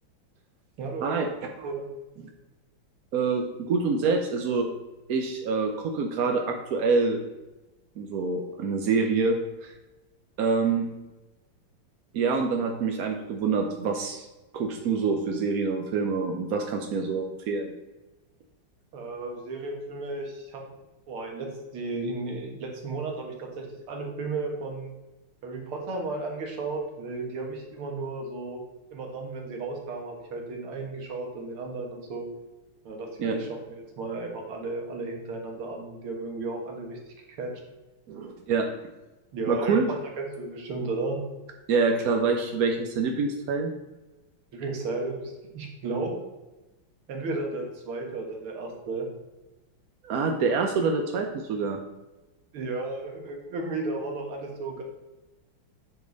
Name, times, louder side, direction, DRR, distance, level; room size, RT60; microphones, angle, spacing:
voice 1, 0.8-1.3 1.6-1.8 18.9-20.6 21.1-24.9 25.4-28.6 28.9-32.3 32.8-37.0 37.4-37.5 39.3-41.2 44.5-46.2 47.1-49.1 52.5-54.8, right 3 dB, 85° right, 1 dB, 2.3 m, -34 dB
voice 2, 3.1-4.7 5.1-7.2 8.0-9.7 10.4-10.9 12.1-14.3 14.5-17.7 33.2-33.4 38.1-38.7 39.5-39.8 41.7-43.7 50.0-51.8, right 4 dB, 70° right, 3 dB, 0.9 m, -26 dB
8.9 x 5.2 x 3.9 m, 1.1 s
omnidirectional pair, 2.3 m